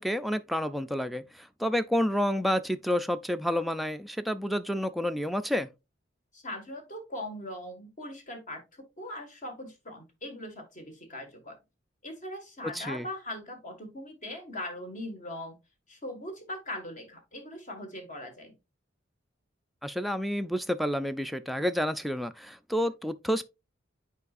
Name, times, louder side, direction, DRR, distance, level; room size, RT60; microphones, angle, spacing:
voice 1, 0.0-5.7 12.7-13.1 19.8-23.4, equal, ahead, 0.3 m, -29 dB
voice 2, 6.3-11.6 12.0-15.6 15.9-18.5, left 1 dB, 40° left, 1.9 m, -40 dB
8.2 x 4.8 x 2.5 m
head